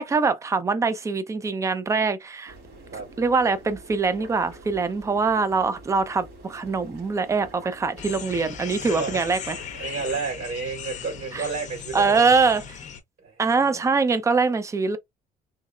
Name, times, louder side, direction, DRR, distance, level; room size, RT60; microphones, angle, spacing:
voice 1, 0.0-2.5 3.2-9.6 11.3-11.5 11.9-12.8 13.4-15.0, right 4 dB, 20° right, 0.5 m, -23 dB
sound 1, 2.5-10.2, right 2 dB, 85° right, 1.9 m, -46 dB
sound 2, 8.0-13.0, left 8 dB, 45° left, 0.7 m, -38 dB
voice 2, 8.8-9.2 9.8-12.3 13.2-13.9, right 4 dB, 65° right, 2.3 m, -31 dB
3.8 x 2.0 x 2.4 m
cardioid pair, 110°, 17 cm